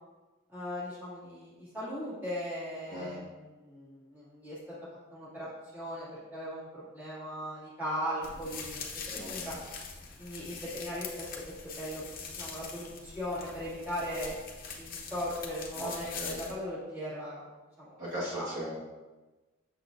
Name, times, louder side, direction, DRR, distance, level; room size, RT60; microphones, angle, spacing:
voice 1, 0.5-4.6 5.1-5.5 5.7-9.6 10.2-14.3 14.7-17.4 17.8-17.9 18.3-18.5, equal, 10° right, -10 dB, 2.2 m, -38 dB
sound 1, 8.2-16.5, left 5 dB, 45° left, 0.8 m, -43 dB
voice 2, 9.1-9.5 15.8-16.4 18.0-18.8, equal, 40° right, -9 dB, 1.7 m, -38 dB
6.9 x 6.4 x 2.6 m, 1.2 s
head